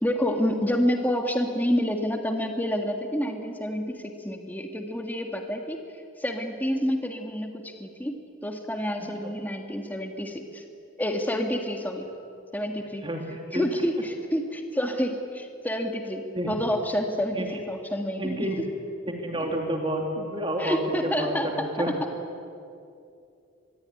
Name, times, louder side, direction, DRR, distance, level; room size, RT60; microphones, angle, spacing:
voice 1, 0.0-5.8 6.2-10.6 11.0-12.1 12.5-13.1 13.5-18.5 19.4-19.5 20.6-21.9, equal, 10° left, 4 dB, 1.8 m, -28 dB
voice 2, 13.0-13.6 16.3-16.5 17.3-17.5 18.2-18.6 19.1-22.0, right 1 dB, 25° right, 2 dB, 2.7 m, -30 dB
25.5 x 21.5 x 10.0 m, 2.6 s
head